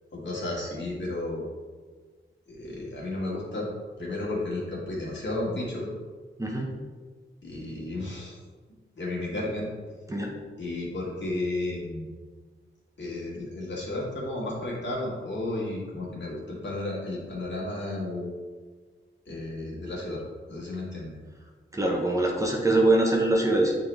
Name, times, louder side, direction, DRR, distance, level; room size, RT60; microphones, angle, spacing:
voice 1, 0.1-1.5 2.5-3.7 4.0-5.9 7.4-8.4 9.0-9.7 10.6-12.1 13.0-18.3 19.3-20.2 20.5-21.2, left 2 dB, 60° left, -4 dB, 2.0 m, -33 dB
voice 2, 6.4-6.7 10.1-10.3 21.7-23.8, right 2 dB, 15° right, -1 dB, 0.8 m, -23 dB
8.7 x 3.8 x 3.4 m, 1.5 s
wide cardioid pair, 130°, 21 cm